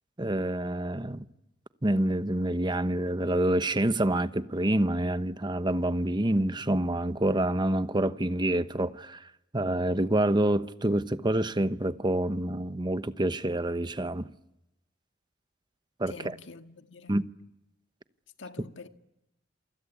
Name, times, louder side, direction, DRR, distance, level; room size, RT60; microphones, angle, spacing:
voice 1, 0.2-1.2 1.8-9.2 9.5-14.3 16.0-16.1 17.1-17.2, right 1 dB, 25° right, 1.0 m, -27 dB
voice 2, 16.1-17.2 18.4-18.9, left 4 dB, 70° left, 1.8 m, -46 dB
28.5 x 24.5 x 8.4 m
head